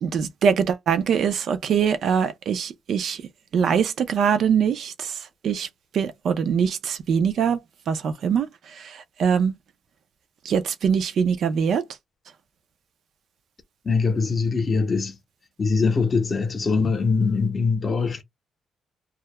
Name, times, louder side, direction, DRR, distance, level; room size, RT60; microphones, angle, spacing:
voice 1, 0.0-3.2 3.5-5.1 5.4-5.7 5.9-7.6 7.9-8.5 9.2-9.5 10.5-11.8, right 7 dB, 65° right, 0.4 m, -22 dB
voice 2, 13.8-15.2 15.6-18.2, left 4 dB, 35° left, 0.7 m, -22 dB
2.3 x 2.0 x 2.9 m
cardioid pair, 125°, 0 cm